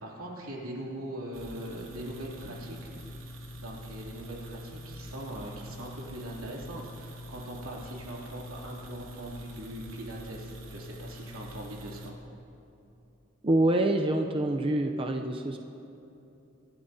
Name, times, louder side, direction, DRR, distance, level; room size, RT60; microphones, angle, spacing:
voice 1, 0.0-3.0 3.6-12.1, right 1 dB, 85° right, -3 dB, 2.7 m, -41 dB
sound 1, 1.3-12.1, equal, 70° right, 1.4 m, -44 dB
voice 2, 13.4-15.6, right 1 dB, 25° right, 4 dB, 0.5 m, -26 dB
26.0 x 11.5 x 2.7 m, 2.9 s
head